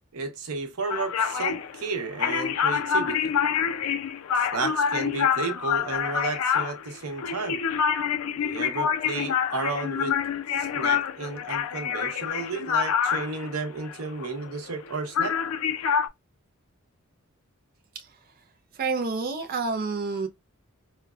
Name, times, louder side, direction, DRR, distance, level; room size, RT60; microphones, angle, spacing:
voice 1, 0.1-3.3 4.3-7.6 8.4-10.2 10.5-15.4, right 4 dB, 90° right, 0.8 m, -33 dB
sound 1, 0.9-14.9 15.2-16.1, left 7 dB, 75° left, 0.4 m, -27 dB
voice 2, 18.8-20.3, right 4 dB, 45° right, 0.4 m, -28 dB
4.5 x 2.1 x 2.3 m
head